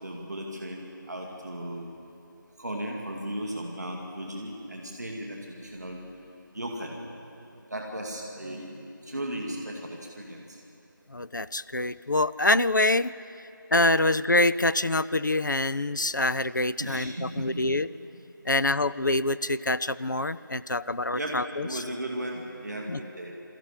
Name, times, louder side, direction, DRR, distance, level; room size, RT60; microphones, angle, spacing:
voice 1, 0.0-1.9 2.6-6.0 6.5-7.1 7.7-10.6 16.8-17.6 21.1-23.3, right 1 dB, ahead, -20 dB, 0.7 m, -36 dB
voice 2, 11.1-13.1 13.7-17.9 18.4-21.8 22.9-23.0, left 2 dB, 60° left, 14 dB, 0.5 m, -25 dB
23.5 x 14.0 x 8.4 m, 2.7 s
figure-of-eight pair, 175°, 11 cm